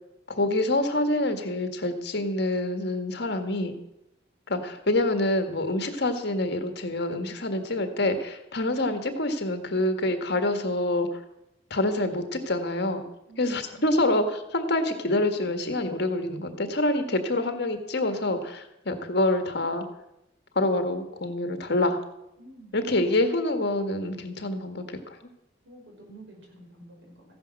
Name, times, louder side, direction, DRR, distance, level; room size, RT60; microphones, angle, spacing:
voice 1, 0.3-3.7 4.5-11.2 11.7-13.0 13.4-19.9 20.5-22.0 22.7-25.2, left 1 dB, 60° left, 7 dB, 1.7 m, -26 dB
voice 2, 13.3-14.0 22.4-22.8 25.6-27.2, right 2 dB, 80° right, 0 dB, 5.4 m, -49 dB
15.0 x 10.5 x 6.5 m, 0.86 s
head